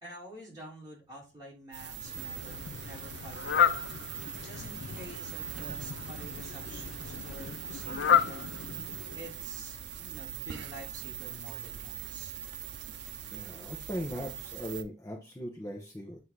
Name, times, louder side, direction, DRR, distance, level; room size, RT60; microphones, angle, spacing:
voice 1, 0.0-3.7 4.4-8.9 9.1-12.4, right 1 dB, 20° right, -4 dB, 2.8 m, -48 dB
sound 1, 1.7-14.8, right 10 dB, 75° right, 0.6 m, -42 dB
Fowl, 2.0-9.4, left 8 dB, 80° left, 0.5 m, -32 dB
voice 2, 13.0-16.2, equal, 15° left, 1 dB, 0.8 m, -39 dB
7.7 x 2.7 x 4.7 m, 0.29 s
head